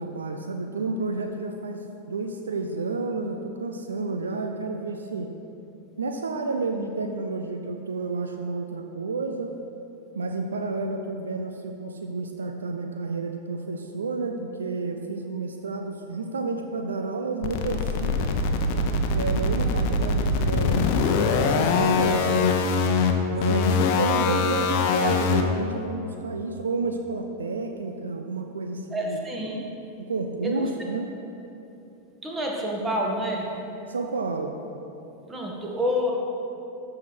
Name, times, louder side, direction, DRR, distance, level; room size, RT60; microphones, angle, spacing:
voice 1, 0.0-5.3 6.0-9.6 10.1-18.3 19.1-22.6 23.3-29.2 30.1-31.1 33.9-34.6, right 3 dB, 70° right, 5 dB, 0.6 m, -30 dB
sound 1, 17.4-25.4, left 4 dB, 45° left, 0.9 m, -23 dB
voice 2, 23.5-23.8 28.9-29.6 30.4-30.9 32.2-33.4 35.3-36.1, equal, 15° right, -1 dB, 1.7 m, -28 dB
13.5 x 4.9 x 6.0 m, 2.8 s
figure-of-eight pair, 90°, 0 cm